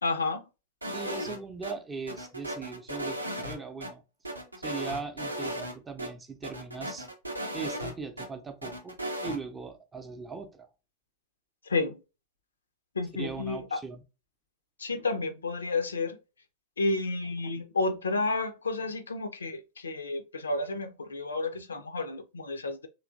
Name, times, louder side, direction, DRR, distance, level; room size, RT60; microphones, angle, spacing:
voice 1, 0.0-0.4 11.7-12.0 13.0-13.8 14.8-16.2 16.8-22.9, left 3 dB, 75° left, 0.4 m, -31 dB
sound 1, 0.8-1.7 2.1-3.9 4.2-5.7 6.0-6.1 6.4-8.3 8.6-9.4, right 1 dB, 85° right, 0.6 m, -36 dB
voice 2, 0.9-4.0 4.6-7.1 7.5-9.0 9.2-10.7 13.1-14.0, right 4 dB, 15° right, 0.6 m, -39 dB
3.1 x 2.8 x 2.5 m
figure-of-eight pair, 90°, 0 cm